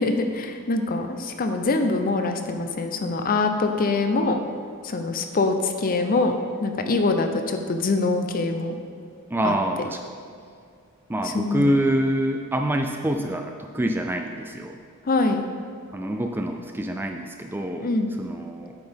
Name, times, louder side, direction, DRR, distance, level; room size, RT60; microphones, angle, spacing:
voice 1, 0.0-4.4 4.8-8.8 9.4-9.5 11.2-11.7 15.1-15.4 17.8-18.1, left 3 dB, 40° left, 6 dB, 0.6 m, -24 dB
voice 2, 9.3-10.0 11.1-14.8 15.9-17.9 18.2-18.7, right 1 dB, 10° right, 4 dB, 0.3 m, -26 dB
8.9 x 5.9 x 3.5 m, 2.3 s
head